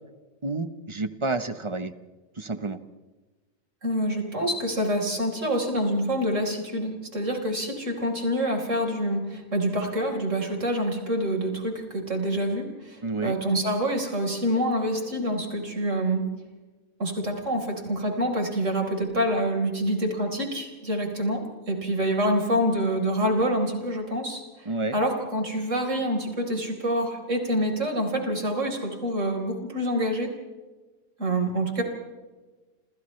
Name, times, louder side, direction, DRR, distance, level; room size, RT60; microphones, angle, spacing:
voice 1, 0.4-1.9 2.4-2.8 13.0-13.4 24.7-25.0, right 3 dB, 25° right, 10 dB, 0.8 m, -29 dB
voice 2, 3.8-16.2 17.0-30.3 31.2-31.8, equal, 40° right, 1 dB, 4.7 m, -26 dB
28.5 x 28.5 x 3.3 m, 1.2 s
omnidirectional pair, 1.9 m